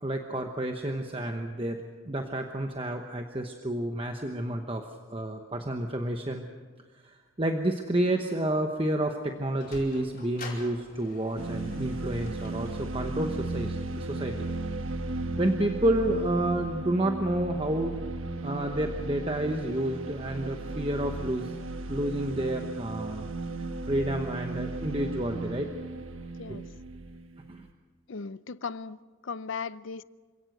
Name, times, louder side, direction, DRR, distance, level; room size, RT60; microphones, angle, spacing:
voice 1, 0.0-6.4 7.0-14.5 15.4-18.0 18.4-21.6 21.9-23.3 23.6-25.7 26.5-26.6 27.5-27.7, right 1 dB, 25° right, 1.0 m, -30 dB
Sliding door, 9.4-15.7, left 3 dB, 40° left, 4.9 m, -49 dB
sound 1, 11.4-27.7, right 2 dB, 75° right, 1.3 m, -35 dB
voice 2, 26.4-26.7 28.1-30.0, left 5 dB, 65° left, 0.6 m, -37 dB
27.0 x 17.0 x 6.7 m
head